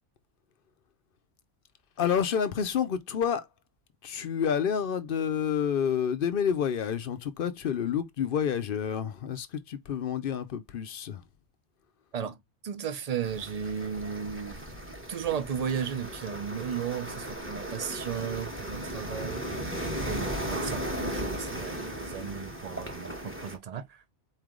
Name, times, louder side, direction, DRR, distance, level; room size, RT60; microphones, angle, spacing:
voice 1, 2.0-3.5 4.0-11.2, left 8 dB, 60° left, 0.7 m, -29 dB
voice 2, 12.6-14.6 15.1-19.5 20.0-24.0, right 7 dB, 45° right, 0.6 m, -35 dB
sound 1, 13.2-23.5, equal, 10° right, 1.0 m, -36 dB
4.3 x 3.2 x 3.7 m
omnidirectional pair, 1.2 m